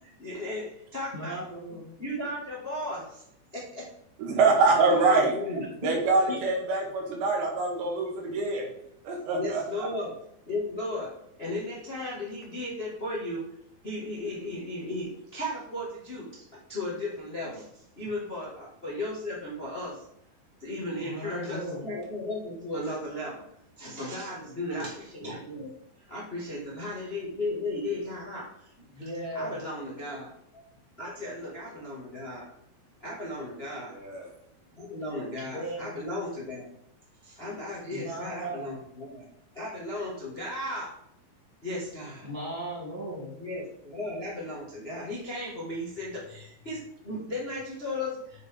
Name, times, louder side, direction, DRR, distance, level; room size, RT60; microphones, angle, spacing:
voice 1, 0.0-1.4 2.0-3.2 3.5-3.8 4.9-5.7 6.3-6.4 8.3-8.4 9.3-10.2 10.5-11.1 11.4-13.4 13.8-20.0 20.6-23.4 23.8-25.7 26.1-30.6 31.0-32.5 33.0-33.9 34.8-36.7 37.2-39.3 39.5-40.9 41.6-42.3 43.4-48.5, left 1 dB, 85° left, -5 dB, 0.5 m, -35 dB
voice 2, 1.1-1.9 5.5-6.0 21.0-21.9 28.9-29.6 35.4-35.9 37.9-38.7 42.2-43.3, right 1 dB, 15° right, -5 dB, 2.5 m, -36 dB
voice 3, 4.2-5.3 5.8-8.7 9.1-9.9 33.9-34.2, right 3 dB, 85° right, 1 dB, 3.5 m, -25 dB
7.7 x 6.6 x 3.6 m, 0.76 s
omnidirectional pair, 4.3 m